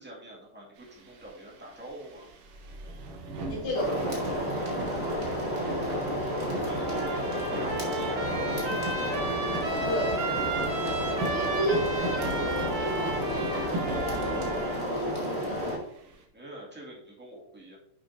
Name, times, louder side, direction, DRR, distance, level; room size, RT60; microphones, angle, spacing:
voice 1, 0.0-2.3 6.6-8.6 16.3-17.8, right 1 dB, 5° right, -4 dB, 1.6 m, -44 dB
sound 1, 0.8-16.2, right 2 dB, 90° right, 2.7 m, -38 dB
voice 2, 3.5-4.2 9.8-10.2 11.2-15.3, equal, 85° left, -7 dB, 3.4 m, -33 dB
sound 2, 3.7-15.8, equal, 20° right, 1.7 m, -31 dB
Trumpet, 6.7-14.9, right 2 dB, 55° right, 2.6 m, -35 dB
11.0 x 5.2 x 2.7 m, 0.71 s
omnidirectional pair, 3.5 m